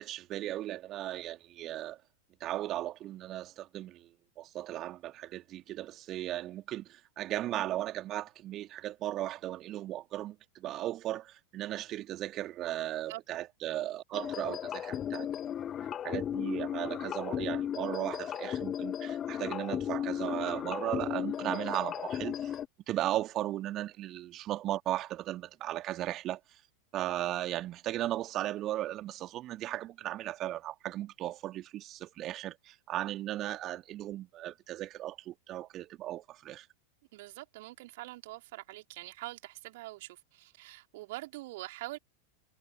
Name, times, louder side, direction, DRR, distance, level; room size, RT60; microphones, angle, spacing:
voice 1, 0.0-2.0 2.4-15.5 16.0-22.6 22.9-26.6 26.9-36.7, right 14 dB, 35° right, 2.6 m, -36 dB
sound 1, 14.1-22.7, left 9 dB, 25° left, 1.1 m, -35 dB
voice 2, 37.1-42.0, right 19 dB, 50° right, 2.9 m, -44 dB
figure-of-eight pair, 90°, 0 cm